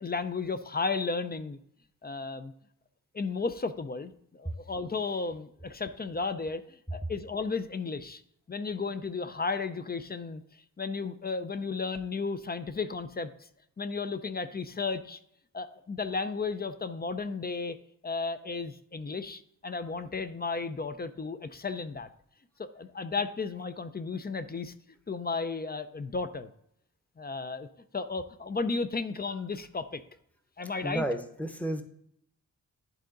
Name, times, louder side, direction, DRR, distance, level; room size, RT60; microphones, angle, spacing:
voice 1, 0.0-1.6 2.0-2.5 3.1-8.2 8.5-13.3 13.8-15.2 15.5-17.8 18.0-22.1 22.6-24.7 25.1-26.5 27.2-27.7 27.9-30.0 30.6-31.0, left 4 dB, 25° left, 11 dB, 0.5 m, -34 dB
voice 2, 30.8-31.8, right 1 dB, 5° left, 7 dB, 0.9 m, -32 dB
11.0 x 3.7 x 3.9 m, 0.71 s
cardioid pair, 70°, 37 cm